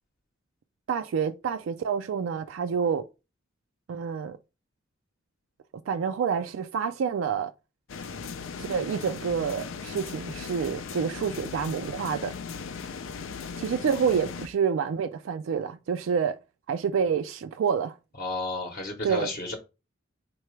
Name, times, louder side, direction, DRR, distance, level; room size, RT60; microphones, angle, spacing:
voice 1, 0.9-3.1 3.9-4.4 5.9-7.5 8.6-12.3 13.6-16.4 16.7-17.9 19.0-19.3, right 6 dB, 80° right, 0.3 m, -28 dB
sound 1, 7.9-14.5, left 5 dB, 85° left, 0.5 m, -38 dB
voice 2, 18.2-19.6, left 2 dB, 45° left, 0.8 m, -32 dB
4.6 x 3.7 x 3.1 m
head